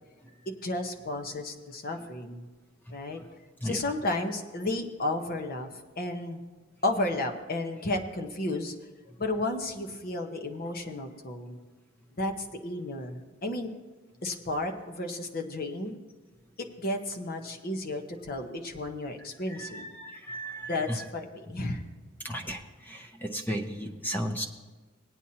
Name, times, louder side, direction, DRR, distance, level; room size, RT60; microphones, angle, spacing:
voice 1, 0.5-2.5 2.9-3.2 3.6-6.4 6.8-8.7 9.2-11.6 12.2-13.7 14.2-16.0 16.8-19.9 20.7-21.8, left 2 dB, 45° left, 4 dB, 1.0 m, -33 dB
voice 2, 20.0-20.7 22.2-22.6 22.9-24.4, equal, 10° left, 2 dB, 0.7 m, -34 dB
18.5 x 9.0 x 2.8 m, 1.3 s
head